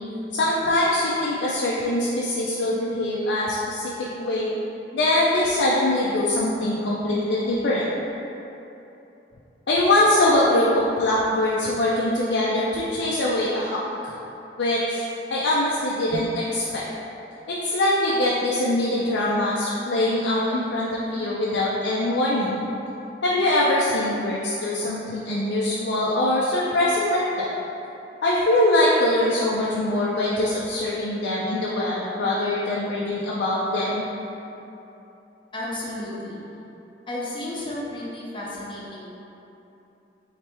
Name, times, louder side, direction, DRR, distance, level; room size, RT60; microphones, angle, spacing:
voice 1, 0.3-3.9 4.2-4.5 4.9-7.8 9.7-14.1 14.6-15.0 15.3-16.8 17.5-22.6 23.2-27.5 28.2-34.1, left 1 dB, 75° left, -6 dB, 0.5 m, -23 dB
voice 2, 35.5-36.4 37.1-39.1, left 1 dB, 30° left, -6 dB, 0.8 m, -33 dB
3.3 x 3.3 x 4.4 m, 2.9 s
head